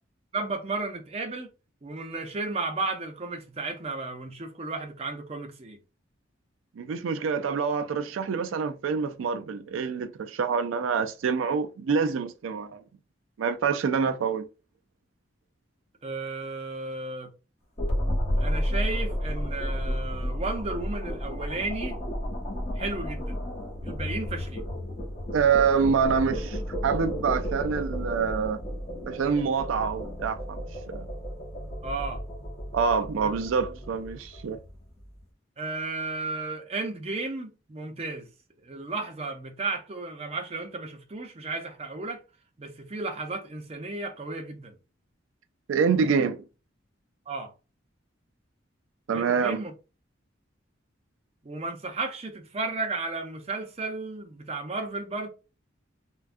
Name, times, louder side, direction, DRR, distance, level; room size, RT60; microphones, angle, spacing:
voice 1, 0.3-1.5 1.8-5.8 16.0-17.3 18.4-22.0 22.8-23.4 23.8-24.6 31.8-32.2 33.2-33.3 35.6-38.3 38.6-42.2 42.6-44.7 47.3-47.5 49.1-49.7 51.4-55.3, right 3 dB, 30° right, 0.5 m, -34 dB
voice 2, 6.8-12.8 13.4-14.5 25.3-28.6 29.1-31.1 32.7-34.6 45.7-46.4 49.1-49.6, right 6 dB, 85° right, 0.4 m, -26 dB
sound 1, 17.8-35.0, equal, 30° left, 0.8 m, -32 dB
3.4 x 2.2 x 2.5 m
head